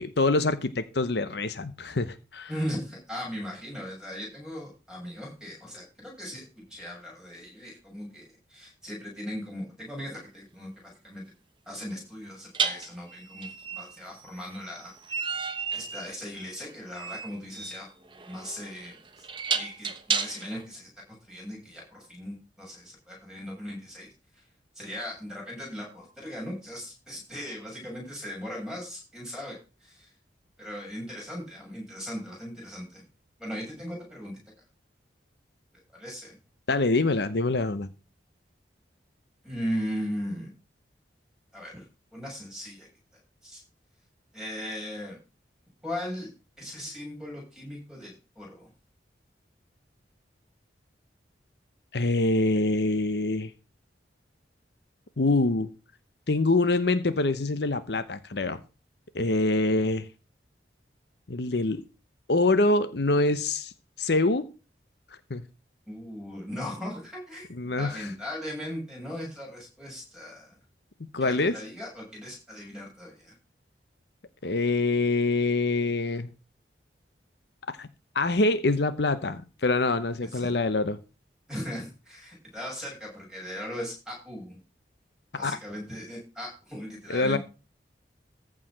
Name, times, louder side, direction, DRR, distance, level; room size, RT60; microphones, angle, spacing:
voice 1, 0.0-2.5 36.7-37.9 51.9-53.5 55.2-55.7 56.3-58.6 59.1-60.1 61.3-61.8 62.3-63.7 64.0-64.5 65.3-65.4 67.6-68.1 71.1-71.5 74.4-76.3 77.8-77.9 78.1-81.0 85.4-85.6 87.1-87.4, left 2 dB, 70° left, 0.8 m, -25 dB
voice 2, 2.5-11.2 11.7-14.9 15.2-15.3 15.7-17.9 18.3-19.2 19.5-20.9 21.3-24.5 24.7-30.1 30.6-33.0 33.4-34.3 35.9-36.4 39.4-40.5 41.5-41.8 42.1-42.9 43.4-43.6 44.3-45.2 45.8-46.3 46.6-48.7 65.9-70.6 71.2-73.3 80.2-80.5 81.5-84.6 85.3-87.4, equal, 5° right, 7.0 m, -38 dB
sound 1, 10.1-10.3 12.5-20.6, right 5 dB, 25° right, 1.1 m, -33 dB
14.5 x 4.9 x 6.2 m
head